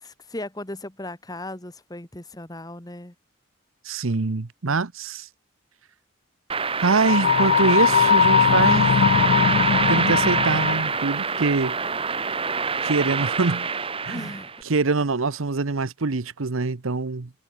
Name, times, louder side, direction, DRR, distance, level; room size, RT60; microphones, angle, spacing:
voice 1, 0.0-3.1 14.1-14.5, left 1 dB, 20° left, 1.7 m, -37 dB
voice 2, 3.8-5.3 6.8-8.9 9.9-11.8 12.8-13.7 14.0-14.3 14.6-17.3, right 4 dB, 85° right, 0.9 m, -24 dB
sound 1, 6.5-14.6, right 5 dB, 25° right, 1.6 m, -25 dB
sound 2, 7.0-11.0, left 7 dB, 55° left, 0.4 m, -20 dB
head